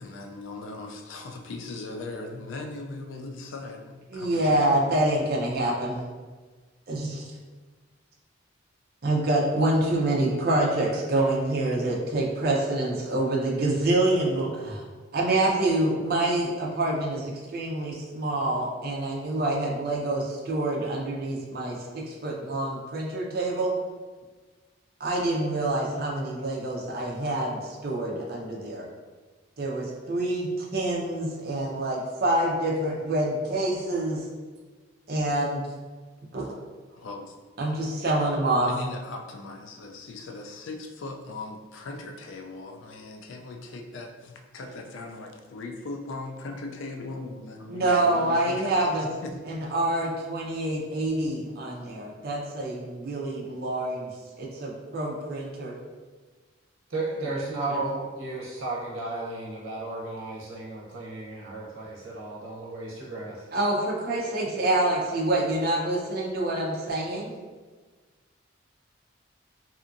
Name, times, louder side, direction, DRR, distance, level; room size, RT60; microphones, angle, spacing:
voice 1, 0.0-4.8 10.3-10.4 37.0-37.3 38.6-49.4 63.1-63.2, left 3 dB, 70° left, 3 dB, 0.4 m, -39 dB
voice 2, 4.1-6.0 6.9-7.2 9.0-14.8 15.1-23.7 25.0-28.8 29.6-34.3 35.1-35.6 36.3-36.5 37.6-38.7 47.7-49.2 49.5-54.1 54.4-55.7 57.7-57.8 63.5-67.3, right 1 dB, 45° right, -3 dB, 0.5 m, -26 dB
voice 3, 56.9-63.4, right 2 dB, 85° right, -4 dB, 0.7 m, -34 dB
2.7 x 2.4 x 2.5 m, 1.4 s
head